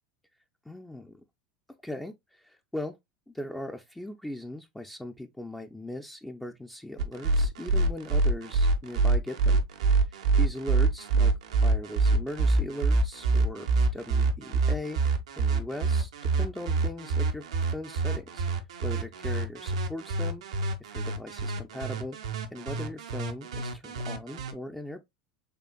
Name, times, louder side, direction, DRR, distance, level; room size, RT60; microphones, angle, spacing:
voice 1, 0.7-1.2 1.8-3.0 3.3-9.6 10.4-11.3 11.6-16.1 16.4-18.4 18.8-20.4 20.9-22.2 22.5-25.0, left 1 dB, 5° left, 0.6 m, -39 dB
sound 1, 7.0-24.5, right 3 dB, 80° right, 0.8 m, -26 dB
6.7 x 2.5 x 2.2 m
hypercardioid pair, 85°, 3 cm